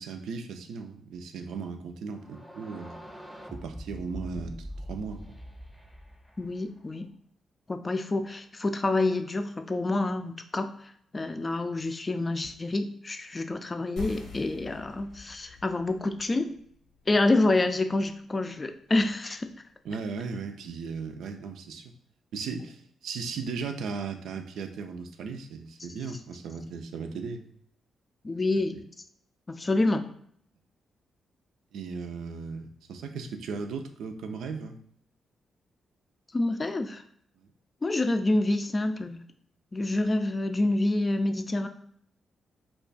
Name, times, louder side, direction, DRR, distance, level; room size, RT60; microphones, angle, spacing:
voice 1, 0.0-3.0 3.5-5.2 19.8-21.9 22.3-27.4 28.7-28.8 31.7-34.8 37.4-37.5, right 5 dB, 80° right, 6 dB, 0.3 m, -37 dB
sound 1, 2.1-7.0, equal, ahead, 0.7 m, -43 dB
voice 2, 6.4-7.1 7.7-16.5 17.1-19.5 28.2-28.8 29.5-30.0 36.3-37.0 37.8-39.2 39.7-41.7, left 2 dB, 35° left, 7 dB, 0.4 m, -27 dB
sound 2, 14.0-19.1, left 5 dB, 85° left, 0.9 m, -47 dB
2.4 x 2.3 x 3.8 m, 0.65 s
supercardioid pair, 55°, 0 cm